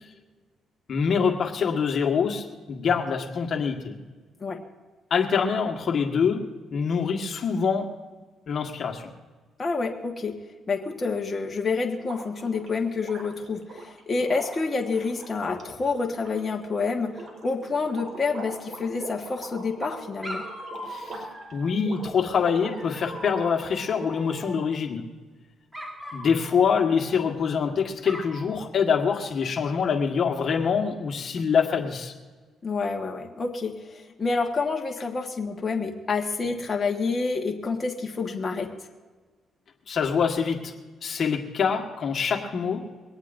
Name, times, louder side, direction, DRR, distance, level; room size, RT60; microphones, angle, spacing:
voice 1, 0.9-4.0 5.1-6.4 6.7-7.9 8.5-9.1 20.8-21.2 21.5-25.0 26.1-32.1 39.9-40.7 41.0-42.8, left 6 dB, 55° left, 2 dB, 1.6 m, -25 dB
voice 2, 9.6-10.3 10.7-20.4 32.6-38.7, left 4 dB, 30° left, 1 dB, 1.6 m, -28 dB
sound 1, 11.9-23.5 23.9-24.7, right 2 dB, 55° right, 4.6 m, -41 dB
Dog, 18.7-19.5 20.2-21.9 22.7-24.8 25.7-27.6 28.0-28.4, equal, 15° right, 3.4 m, -41 dB
22.5 x 18.0 x 2.7 m, 1.4 s
cardioid pair, 90°, 0 cm